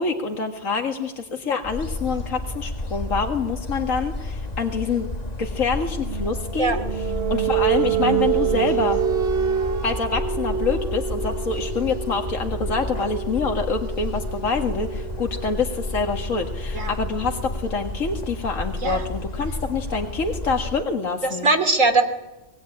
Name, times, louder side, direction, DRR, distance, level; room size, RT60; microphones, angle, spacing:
voice 1, 0.0-5.1 5.4-9.0 9.8-21.5, left 4 dB, 85° left, 3 dB, 2.2 m, -26 dB
sound 1, 1.6-20.8, left 2 dB, 30° left, 1.6 m, -31 dB
sound 2, 6.0-17.5, right 9 dB, 50° right, 1.6 m, -27 dB
voice 2, 21.2-22.0, right 3 dB, 75° right, 9 dB, 3.3 m, -20 dB
25.0 x 21.5 x 9.9 m, 1.1 s
omnidirectional pair, 1.3 m